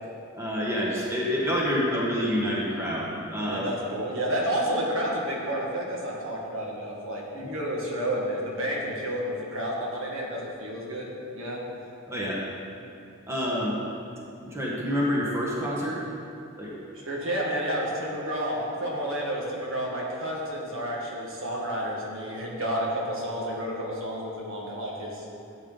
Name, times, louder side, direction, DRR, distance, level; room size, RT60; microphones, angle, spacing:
voice 1, 0.3-3.6 12.1-12.4 13.3-13.8 14.4-16.0 16.6-16.7, equal, 15° right, -5 dB, 1.6 m, -27 dB
voice 2, 3.5-11.6 16.9-25.2, equal, 70° right, -3 dB, 2.0 m, -30 dB
14.0 x 8.5 x 4.1 m, 2.6 s
head